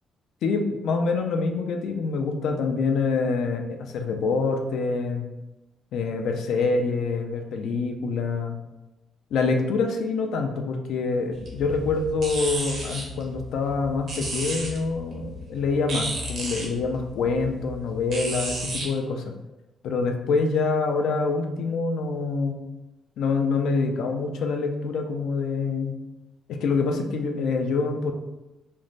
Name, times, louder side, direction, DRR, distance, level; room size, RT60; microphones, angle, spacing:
voice 1, 0.4-5.2 5.9-8.6 9.3-19.3 19.8-22.6 23.2-26.0 26.5-28.1, left 4 dB, 75° left, 4 dB, 0.3 m, -26 dB
sound 1, 11.3-18.9, right 1 dB, 60° right, 0.7 m, -34 dB
2.5 x 2.0 x 3.1 m, 0.99 s
cardioid pair, 90°, 0 cm